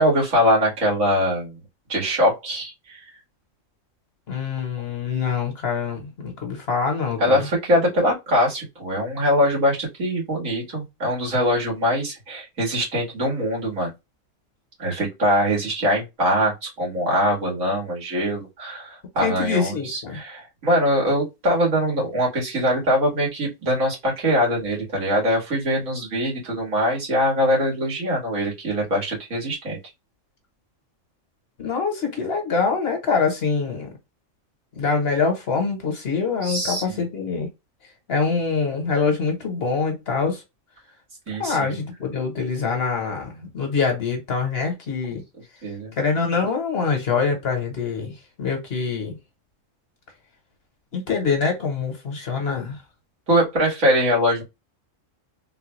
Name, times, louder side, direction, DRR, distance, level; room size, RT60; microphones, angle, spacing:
voice 1, 0.0-1.6 1.9-3.0 7.2-13.9 14.8-29.8 36.4-37.0 41.3-41.8 45.6-45.9 53.3-54.4, equal, 85° right, 2.1 m, -22 dB
voice 2, 4.3-7.5 19.2-20.2 31.6-33.9 34.8-37.5 38.1-40.4 41.4-45.2 46.0-49.2 50.9-52.8, left 5 dB, 55° left, 1.3 m, -24 dB
3.8 x 2.2 x 3.1 m
omnidirectional pair, 1.3 m